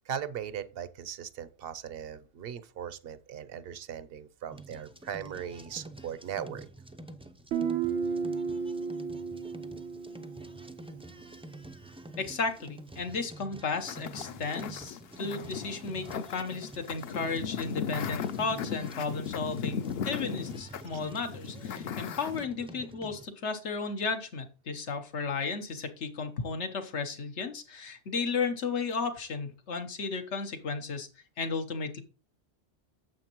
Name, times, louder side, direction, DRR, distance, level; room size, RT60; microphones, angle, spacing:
voice 1, 0.1-6.7 20.9-21.0, right 8 dB, 60° right, 0.8 m, -39 dB
sound 1, 4.5-23.2, right 1 dB, 10° right, 0.4 m, -48 dB
Guitar, 7.5-11.1, right 6 dB, 90° right, 1.0 m, -33 dB
voice 2, 12.2-31.1 31.4-32.0, left 4 dB, 85° left, 1.4 m, -34 dB
sound 2, 13.9-22.5, left 8 dB, 65° left, 0.8 m, -37 dB
9.3 x 7.1 x 3.0 m
omnidirectional pair, 1.2 m